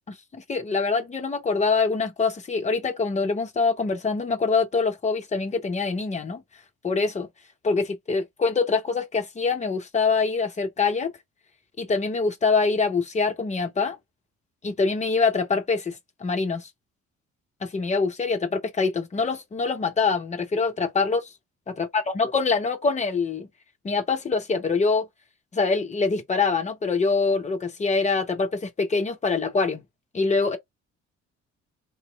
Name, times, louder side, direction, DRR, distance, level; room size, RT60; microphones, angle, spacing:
voice 1, 0.1-6.4 6.8-7.3 7.6-11.1 11.8-14.0 14.6-16.7 17.6-21.2 21.8-23.5 23.8-25.1 25.5-29.8 30.1-30.6, left 4 dB, 20° left, 0.8 m, -24 dB
3.0 x 2.9 x 2.3 m
figure-of-eight pair, 45°, 36 cm